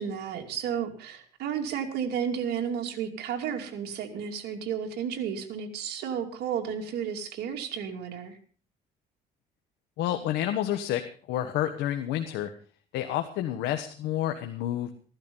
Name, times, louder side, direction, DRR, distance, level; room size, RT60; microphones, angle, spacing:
voice 1, 0.0-8.4, right 8 dB, 75° right, 3 dB, 2.7 m, -32 dB
voice 2, 10.0-11.0 11.3-12.5 12.9-14.9, left 12 dB, 85° left, 6 dB, 1.4 m, -29 dB
15.5 x 12.0 x 5.5 m, 0.41 s
cardioid pair, 110°, 17 cm